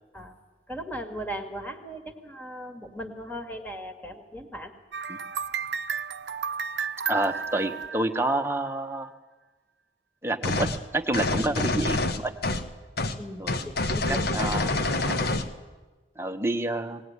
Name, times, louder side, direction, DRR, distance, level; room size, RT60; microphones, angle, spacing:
voice 1, 0.7-4.7 13.2-14.4, equal, 10° left, 5 dB, 1.9 m, -38 dB
sound 1, 4.9-8.7, right 6 dB, 75° right, 0.6 m, -33 dB
voice 2, 7.1-9.1 10.2-12.3 13.4-13.7 14.1-15.2 16.2-17.0, right 1 dB, 15° right, 5 dB, 1.0 m, -29 dB
sound 2, 10.4-10.8 11.1-12.7 13.0-13.2 13.5-15.5, left 2 dB, 60° left, 1.2 m, -27 dB
20.0 x 18.0 x 9.6 m, 1.3 s
head